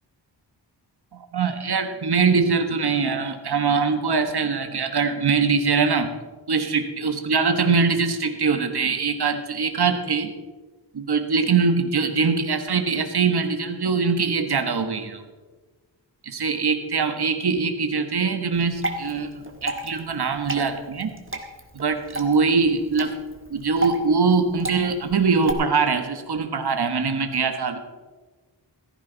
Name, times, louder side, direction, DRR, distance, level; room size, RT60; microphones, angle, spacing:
voice 1, 1.1-6.2 6.5-10.3 10.9-15.2 16.2-21.2 21.7-23.1 23.5-27.8, right 5 dB, 60° right, 7 dB, 1.5 m, -22 dB
Water / Drip, 18.5-25.5, right 1 dB, 25° right, 1.6 m, -33 dB
16.0 x 14.0 x 4.0 m, 1.3 s
wide cardioid pair, 115°, 45 cm